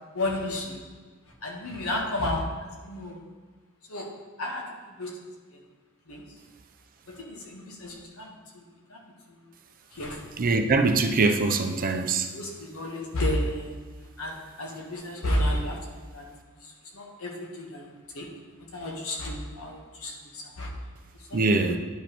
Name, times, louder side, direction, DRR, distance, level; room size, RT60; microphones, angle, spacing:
voice 1, 0.1-0.8 1.4-2.4 2.8-3.2 3.9-4.1 4.4-4.6 5.0-5.2 5.5-5.6 6.1-6.2 7.1-8.6 8.9-9.0 9.9-10.4 12.3-13.8 14.2-15.8 16.1-16.2 16.9-18.3 18.7-20.7 21.3-21.4, left 1 dB, 80° left, 0 dB, 1.3 m, -32 dB
voice 2, 10.4-12.3 21.3-21.8, right 3 dB, 40° right, 6 dB, 0.5 m, -23 dB
10.0 x 5.0 x 3.0 m, 1.4 s
head